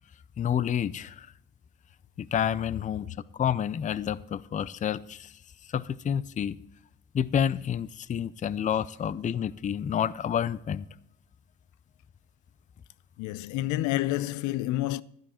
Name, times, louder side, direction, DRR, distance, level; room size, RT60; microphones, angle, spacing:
voice 1, 0.4-1.3 2.2-3.1 3.4-5.3 5.7-6.6 7.1-10.9, left 9 dB, 25° left, 0.4 m, -29 dB
voice 2, 13.2-15.0, left 15 dB, 85° left, 0.5 m, -28 dB
12.5 x 11.5 x 4.3 m
cardioid pair, 135°, 29 cm